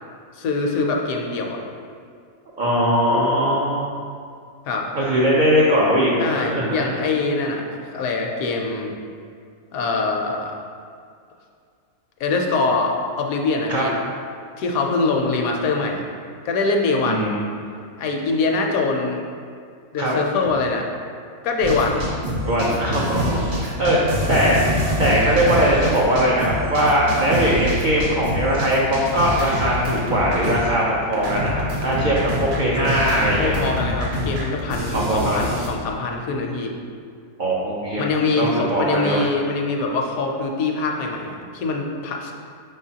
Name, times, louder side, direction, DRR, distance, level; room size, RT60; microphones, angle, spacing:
voice 1, 0.4-1.6 4.7-4.9 6.2-8.9 9.7-10.6 12.2-14.0 14.6-16.0 16.4-17.3 18.0-19.2 19.9-20.9 21.4-22.0 33.4-36.7 38.0-42.3, left 3 dB, 75° left, 2 dB, 1.0 m, -23 dB
voice 2, 2.6-3.9 4.9-6.9 13.7-13.8 17.0-17.4 20.0-20.1 22.4-24.0 24.3-24.6 25.0-33.6 34.9-35.4 37.4-38.1 38.4-39.2, equal, 75° right, -5 dB, 0.4 m, -20 dB
sound 1, 21.6-30.9 31.1-35.7, equal, 45° right, 0.8 m, -26 dB
5.2 x 3.7 x 2.7 m, 2.2 s
omnidirectional pair, 1.5 m